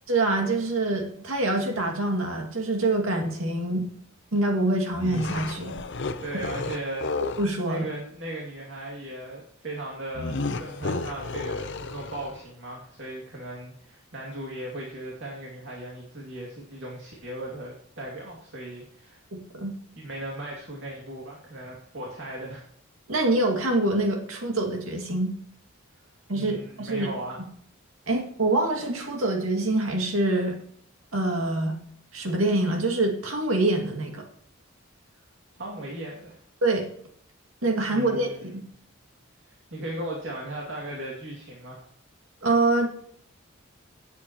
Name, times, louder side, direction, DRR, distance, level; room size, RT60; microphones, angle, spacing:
voice 1, 0.1-3.9 4.3-5.7 7.4-7.9 19.3-19.7 23.1-25.3 26.3-27.1 28.1-30.6 31.1-31.8 32.1-34.3 36.6-36.9 37.6-38.6 42.4-42.9, right 2 dB, 90° right, 2 dB, 2.2 m, -25 dB
sound 1, 4.9-7.5 10.1-12.4, left 3 dB, 60° left, 0.7 m, -33 dB
voice 2, 6.2-7.1 7.6-19.2 20.0-22.6 26.3-27.4 35.5-36.4 37.9-38.5 39.4-41.8, right 1 dB, 60° right, -3 dB, 2.4 m, -37 dB
17.0 x 8.3 x 3.0 m, 0.62 s
head